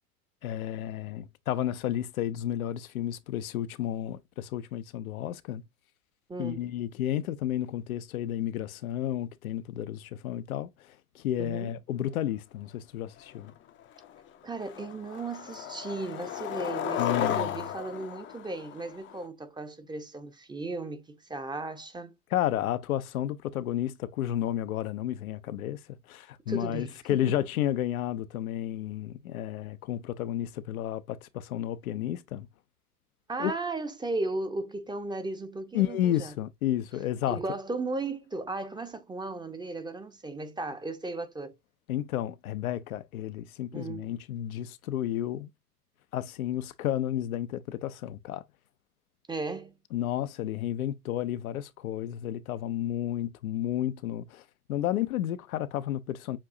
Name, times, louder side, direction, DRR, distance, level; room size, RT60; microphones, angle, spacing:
voice 1, 0.4-5.6 6.4-13.5 17.0-17.5 22.3-25.8 26.1-32.5 33.4-33.5 35.7-37.4 41.9-45.5 46.1-48.4 49.9-54.4 54.7-56.4, left 12 dB, 65° left, 0.7 m, -32 dB
voice 2, 6.3-6.6 11.4-11.7 14.4-22.1 26.5-27.4 33.3-36.3 37.3-41.5 43.7-44.1 49.3-49.8, right 2 dB, 10° right, 0.7 m, -36 dB
Skateboard, 13.5-13.6 14.0-14.3 14.6-19.2, left 10 dB, 25° left, 0.6 m, -34 dB
7.2 x 2.7 x 2.6 m
figure-of-eight pair, 85°, 46 cm